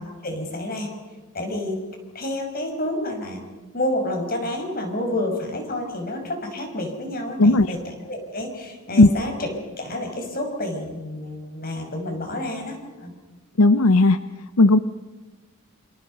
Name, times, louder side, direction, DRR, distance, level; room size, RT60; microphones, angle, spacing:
voice 1, 0.2-0.9 1.3-1.8 2.1-3.4 3.7-7.8 8.1-13.1, left 1 dB, 40° left, 4 dB, 5.8 m, -29 dB
voice 2, 7.4-7.8 9.0-9.1 13.6-14.2 14.6-14.8, left 2 dB, 80° left, 12 dB, 0.7 m, -14 dB
28.0 x 27.5 x 5.5 m, 1.2 s
head